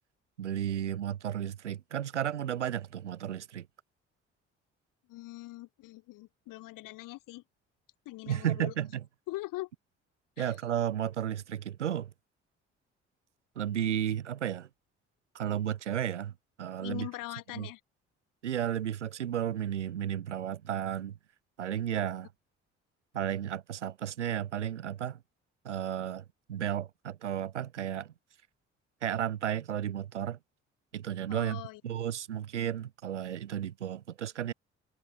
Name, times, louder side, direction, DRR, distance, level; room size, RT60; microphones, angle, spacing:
voice 1, 0.4-3.7 8.3-9.0 10.4-12.1 13.5-14.7 15.3-16.3 16.6-17.1 17.5-17.7 18.4-21.1 21.6-22.3 23.1-25.2 25.6-28.1 29.0-30.4 30.9-34.5, right 10 dB, 85° right, 1.4 m, -33 dB
voice 2, 5.1-7.4 8.0-8.7 9.3-9.7 10.4-10.6 16.8-17.8 31.3-31.8, left 19 dB, 65° left, 5.1 m, -42 dB
figure-of-eight pair, 45°, 35 cm